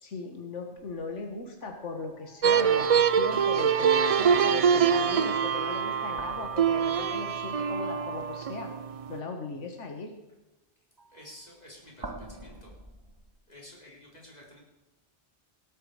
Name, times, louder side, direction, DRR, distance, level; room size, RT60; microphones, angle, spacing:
voice 1, 0.0-8.7 9.1-10.1, left 3 dB, 90° left, 4 dB, 1.7 m, -38 dB
sound 1, 0.7-4.2 6.0-7.6 11.0-13.4, right 2 dB, 20° right, 1.1 m, -48 dB
sound 2, 2.4-9.2, right 7 dB, 65° right, 0.3 m, -24 dB
voice 2, 11.1-12.8 13.5-14.6, left 1 dB, 35° left, -3 dB, 4.2 m, -50 dB
18.0 x 8.6 x 4.8 m, 1.0 s
omnidirectional pair, 1.2 m